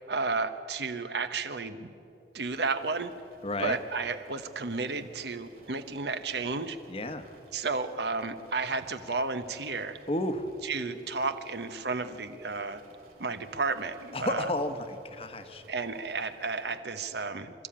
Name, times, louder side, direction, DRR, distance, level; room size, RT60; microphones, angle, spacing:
voice 1, 0.1-1.9 2.3-3.1 3.6-6.8 7.5-10.0 10.7-12.8 13.2-14.5 15.7-17.5, right 4 dB, 70° right, 10 dB, 1.0 m, -32 dB
sound 1, 2.4-16.8, right 1 dB, 55° right, 4.0 m, -58 dB
voice 2, 3.4-3.8 6.9-7.3 10.1-10.5 14.1-15.6, left 1 dB, 35° left, 9 dB, 1.1 m, -32 dB
26.5 x 13.5 x 8.7 m, 3.0 s
head